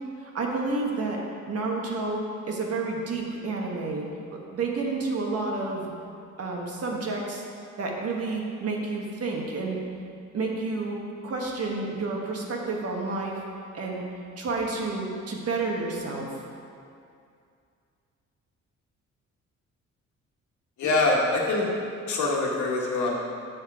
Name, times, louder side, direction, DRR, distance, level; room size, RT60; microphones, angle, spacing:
voice 1, 0.2-5.9 6.4-7.4 7.8-9.8 10.3-13.4 13.7-14.0 14.4-16.3, right 3 dB, 50° right, -1 dB, 1.4 m, -30 dB
voice 2, 20.8-21.7 22.1-23.2, left 2 dB, 75° left, -2 dB, 1.5 m, -24 dB
6.6 x 6.4 x 4.8 m, 2.4 s
cardioid pair, 90°, 30 cm